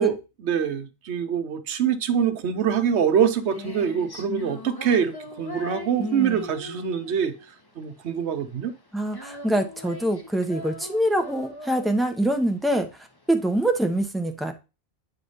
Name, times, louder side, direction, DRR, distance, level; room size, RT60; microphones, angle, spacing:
voice 1, 0.0-7.3 7.8-8.7, right 8 dB, 90° right, 1.1 m, -24 dB
Female singing, 3.0-14.0, left 2 dB, 20° left, 1.0 m, -40 dB
voice 2, 6.0-6.4 8.9-12.9 13.3-14.5, right 1 dB, ahead, 0.8 m, -24 dB
8.5 x 3.3 x 5.4 m
omnidirectional pair, 1.1 m